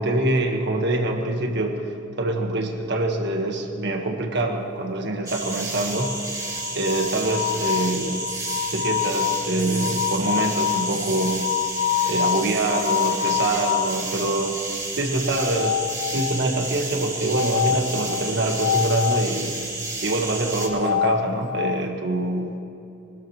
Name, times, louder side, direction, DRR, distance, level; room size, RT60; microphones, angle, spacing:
voice 1, 0.0-1.8 2.2-6.2 6.7-8.2 8.7-11.4 12.0-14.6 14.9-15.8 16.1-19.6 20.0-22.5, right 2 dB, 60° right, 2 dB, 1.6 m, -25 dB
sound 1, 5.3-20.7, right 3 dB, 20° right, 2.6 m, -31 dB
sound 2, 5.9-14.0 15.3-16.6 17.3-19.3 20.5-21.8, left 10 dB, 60° left, 0.3 m, -27 dB
23.0 x 13.0 x 3.2 m, 2.8 s
head